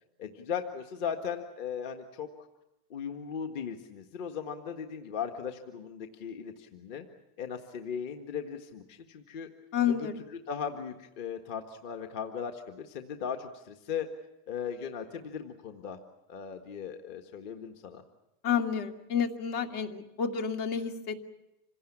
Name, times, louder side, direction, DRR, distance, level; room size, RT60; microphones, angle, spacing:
voice 1, 0.2-2.5 2.9-7.1 7.4-9.5 9.9-10.1 10.5-14.1 14.5-16.0 16.3-18.0, left 7 dB, 45° left, 5 dB, 1.7 m, -37 dB
voice 2, 9.7-10.1 18.4-21.2, left 7 dB, 70° left, 5 dB, 2.7 m, -30 dB
27.0 x 17.5 x 10.0 m, 0.92 s
supercardioid pair, 165°, 44 cm